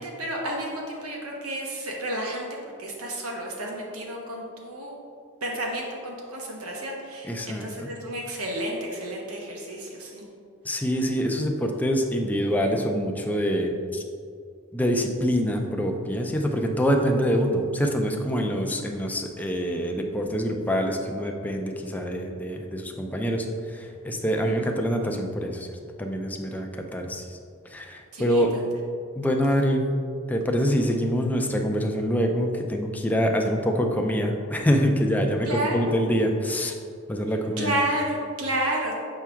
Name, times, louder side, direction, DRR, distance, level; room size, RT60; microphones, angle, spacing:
voice 1, 0.0-2.5 2.8-5.0 5.4-10.2 24.4-24.7 28.1-28.6 29.5-29.6 35.5-35.9 37.6-38.9, right 1 dB, 90° right, -1 dB, 1.2 m, -31 dB
voice 2, 7.3-7.9 10.6-14.0 14.7-23.5 23.7-25.7 26.0-27.2 27.7-28.5 29.2-29.8 30.3-36.7 37.1-37.7, equal, 5° left, 2 dB, 0.4 m, -25 dB
7.1 x 4.4 x 3.5 m, 2.4 s
head